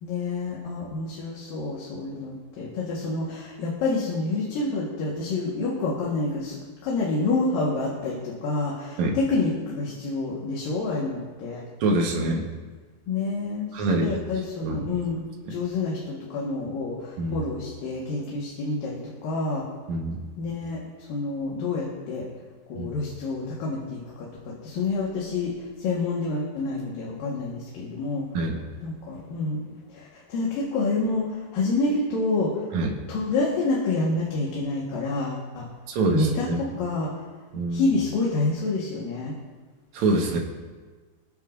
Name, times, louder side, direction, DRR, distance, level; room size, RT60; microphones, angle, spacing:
voice 1, 0.0-11.6 13.1-19.7 20.4-22.3 22.7-28.3 28.8-32.7 33.1-35.7 36.1-36.5 36.8-37.2 37.7-39.3, left 3 dB, 75° left, -4 dB, 3.3 m, -28 dB
voice 2, 11.8-12.5 13.7-14.1 14.6-14.9 17.2-17.5 19.9-20.2 22.8-22.9 28.3-28.6 32.7-32.9 35.9-36.6 37.5-37.8 39.9-40.4, right 2 dB, 60° right, 0 dB, 2.4 m, -25 dB
25.0 x 9.2 x 2.6 m, 1.4 s
omnidirectional pair, 4.1 m